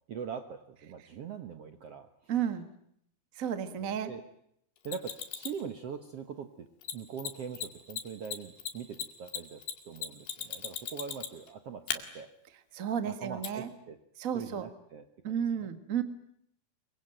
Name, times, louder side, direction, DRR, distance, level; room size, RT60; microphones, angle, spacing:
voice 1, 0.1-2.3 3.8-4.2 4.8-6.7 6.9-12.3 13.0-14.0 14.3-15.7, right 6 dB, 60° right, 8 dB, 1.6 m, -42 dB
voice 2, 2.3-2.6 3.3-4.1 12.7-13.7 14.2-14.7 15.2-16.0, right 8 dB, 40° right, 10 dB, 1.2 m, -32 dB
Mechanisms, 4.9-5.6 6.8-6.9 7.2-7.3 7.5-7.7 7.9-11.5 11.9-12.0 13.4-13.5, left 9 dB, 85° left, 4.1 m, -36 dB
25.5 x 23.5 x 9.1 m, 0.72 s
omnidirectional pair, 4.4 m